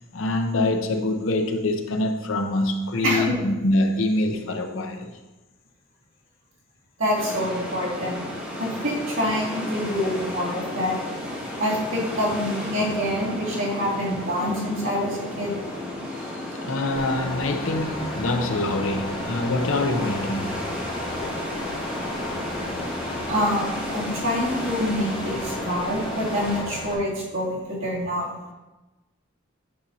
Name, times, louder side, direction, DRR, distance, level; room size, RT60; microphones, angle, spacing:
voice 1, 0.0-5.1 16.3-20.5, left 2 dB, 80° left, 5 dB, 0.7 m, -25 dB
voice 2, 3.0-3.3 7.0-8.2 8.6-11.0 11.6-15.5 23.3-28.3, equal, 75° right, -6 dB, 2.3 m, -26 dB
sound 1, 7.1-26.6, left 1 dB, 10° right, 1.4 m, -33 dB
sound 2, 17.0-27.0, left 1 dB, 25° left, 0.6 m, -35 dB
8.7 x 5.2 x 2.8 m, 1.1 s
head